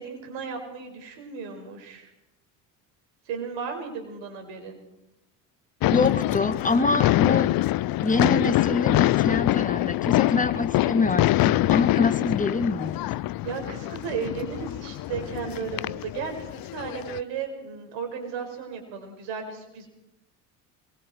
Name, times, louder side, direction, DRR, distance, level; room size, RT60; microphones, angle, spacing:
voice 1, 0.0-2.1 3.2-4.8 13.4-19.9, right 6 dB, 60° right, 4 dB, 6.0 m, -35 dB
sound 1, 5.8-17.2, left 16 dB, 45° left, 0.7 m, -24 dB
voice 2, 5.9-7.5 8.0-13.1, left 3 dB, 15° left, 9 dB, 2.1 m, -26 dB
25.0 x 22.5 x 4.7 m, 0.86 s
hypercardioid pair, 60°, 50 cm